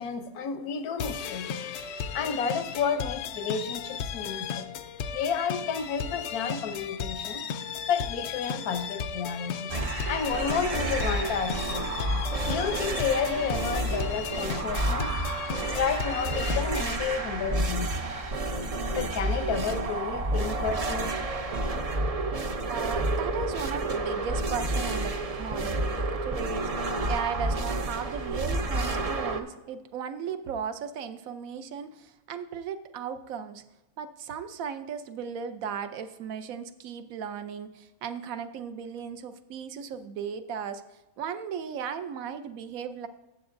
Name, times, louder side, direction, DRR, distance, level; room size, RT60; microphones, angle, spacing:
voice 1, 0.0-1.5 2.1-4.7 5.1-7.4 7.9-9.7 10.1-11.9 12.5-15.1 15.7-17.9 19.0-21.1, left 6 dB, 85° left, 9 dB, 1.3 m, -31 dB
sound 1, 1.0-17.0, left 7 dB, 70° left, 0.7 m, -35 dB
sound 2, 9.7-29.4, right 2 dB, 45° right, 0.4 m, -30 dB
voice 2, 22.7-33.6 34.0-40.8 41.2-43.1, right 7 dB, 70° right, 11 dB, 1.1 m, -36 dB
14.0 x 8.1 x 2.6 m, 0.97 s
omnidirectional pair, 1.6 m